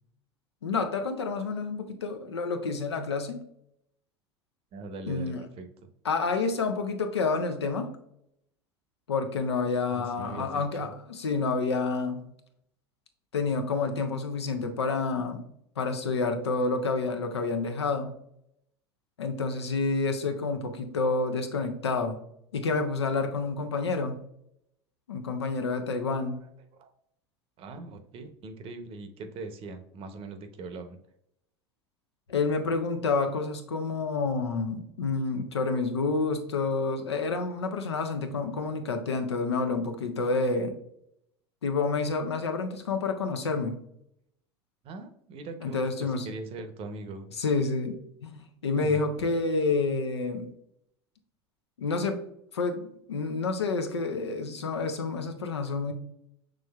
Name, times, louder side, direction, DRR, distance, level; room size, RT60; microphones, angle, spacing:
voice 1, 0.6-3.4 5.1-5.4 6.0-7.9 9.1-12.2 13.3-15.4 15.8-18.1 19.2-22.2 22.5-24.2 25.1-26.4 32.3-40.7 41.6-43.7 45.6-46.3 47.4-48.0 48.2-48.3 48.6-50.5 51.8-52.2 52.5-55.9, left 4 dB, 85° left, 6 dB, 0.6 m, -29 dB
voice 2, 4.7-5.7 9.9-10.7 26.3-26.5 26.8-26.9 27.6-31.0 44.8-47.3 48.7-49.0, right 3 dB, 45° right, 8 dB, 0.8 m, -41 dB
6.2 x 3.2 x 2.3 m, 0.74 s
hypercardioid pair, 80°, 14 cm